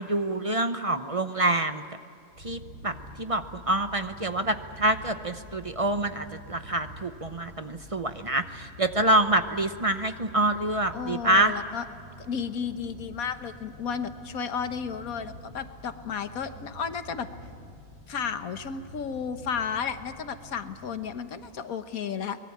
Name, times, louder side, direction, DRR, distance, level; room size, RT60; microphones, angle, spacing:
voice 1, 0.0-1.8 2.4-11.5, right 1 dB, 30° right, 9 dB, 0.8 m, -26 dB
Purr, 2.3-21.6, equal, 80° right, 3.7 m, -48 dB
voice 2, 10.9-11.9 12.2-17.3 18.1-22.4, left 6 dB, 85° left, 9 dB, 1.6 m, -33 dB
23.5 x 21.0 x 8.6 m, 2.4 s
omnidirectional pair, 1.4 m